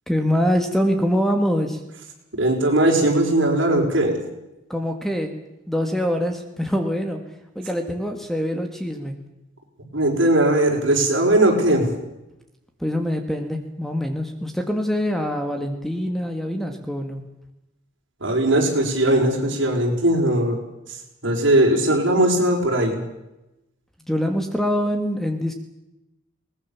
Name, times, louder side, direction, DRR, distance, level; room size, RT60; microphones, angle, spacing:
voice 1, 0.1-1.8 4.7-5.4 5.7-7.2 7.6-9.2 12.8-17.2 24.1-25.5, equal, ahead, 5 dB, 1.8 m, -24 dB
voice 2, 2.4-4.2 9.9-11.9 18.2-20.6 21.2-23.0, right 1 dB, 65° right, 0 dB, 5.7 m, -19 dB
22.0 x 20.0 x 7.3 m, 0.93 s
head